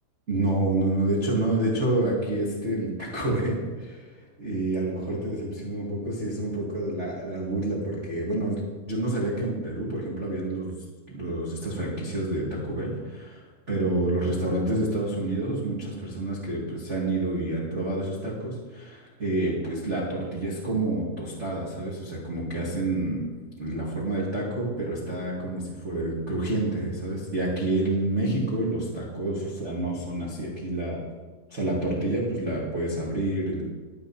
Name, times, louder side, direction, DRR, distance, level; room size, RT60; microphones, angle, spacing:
voice 1, 0.3-4.1 4.4-10.7 11.1-23.3 23.6-31.0 31.5-33.6, right 2 dB, 50° right, -6 dB, 0.8 m, -28 dB
12.0 x 11.0 x 4.3 m, 1.3 s
omnidirectional pair, 5.6 m